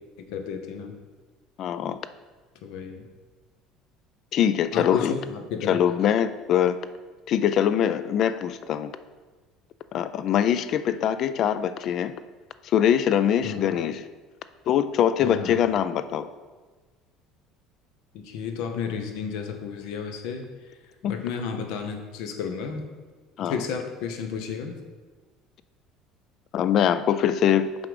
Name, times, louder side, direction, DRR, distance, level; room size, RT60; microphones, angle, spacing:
voice 1, 0.3-0.9 2.6-3.1 4.7-5.8 13.4-13.7 15.2-15.6 18.1-20.5 21.0-22.8 23.4-24.7, left 6 dB, 75° left, 5 dB, 0.8 m, -32 dB
voice 2, 1.6-2.0 4.3-5.1 5.7-6.8 7.3-8.9 9.9-12.2 12.6-14.0 14.7-16.3 21.0-21.2 23.4-23.6 26.5-27.7, left 9 dB, 45° left, 13 dB, 0.3 m, -23 dB
6.8 x 3.7 x 5.0 m, 1.3 s
cardioid pair, 150°, 0 cm